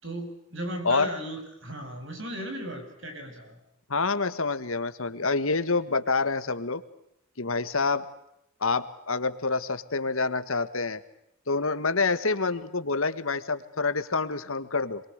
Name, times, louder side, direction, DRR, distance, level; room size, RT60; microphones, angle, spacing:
voice 1, 0.0-3.6, right 1 dB, 60° right, 6 dB, 7.5 m, -36 dB
voice 2, 3.9-6.8 7.4-8.1 8.6-11.0 11.5-15.0, left 4 dB, 75° left, 12 dB, 1.8 m, -27 dB
27.5 x 23.0 x 8.2 m, 0.81 s
head